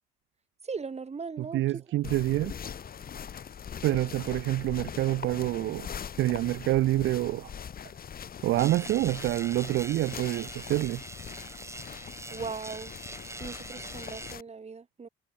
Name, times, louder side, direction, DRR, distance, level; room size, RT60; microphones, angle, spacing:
voice 1, 0.6-2.0 12.3-12.9 13.4-15.1, right 5 dB, 35° right, 3.3 m, -39 dB
voice 2, 1.4-2.5 3.8-5.9 6.2-7.5 8.4-11.0, right 16 dB, 75° right, 0.5 m, -27 dB
sound 1, 2.0-14.4, left 8 dB, 50° left, 1.5 m, -42 dB
sound 2, 8.6-14.3, right 2 dB, 15° right, 5.0 m, -43 dB
cardioid pair, 90°, 20 cm